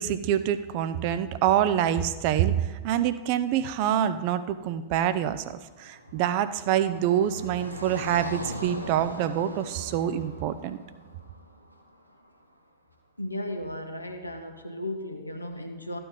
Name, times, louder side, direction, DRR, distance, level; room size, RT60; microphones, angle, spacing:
voice 1, 0.0-10.8, right 10 dB, 45° right, 13 dB, 0.6 m, -26 dB
Car passing by, 5.2-12.3, equal, 90° right, 1.0 m, -40 dB
voice 2, 13.2-16.0, left 1 dB, 85° left, 5 dB, 1.2 m, -35 dB
13.5 x 9.4 x 3.7 m, 1.2 s
figure-of-eight pair, 90°, 0 cm